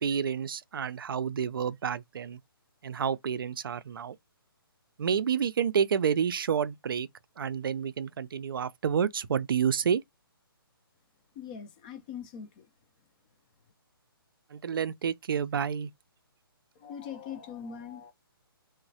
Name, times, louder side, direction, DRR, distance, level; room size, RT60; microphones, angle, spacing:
voice 1, 0.0-2.4 2.8-4.2 5.0-7.1 7.4-10.0 14.5-15.9, right 7 dB, 65° right, 0.4 m, -29 dB
voice 2, 11.4-12.7 16.8-18.1, left 7 dB, 20° left, 0.3 m, -41 dB
3.0 x 2.1 x 2.6 m
hypercardioid pair, 150°, 13 cm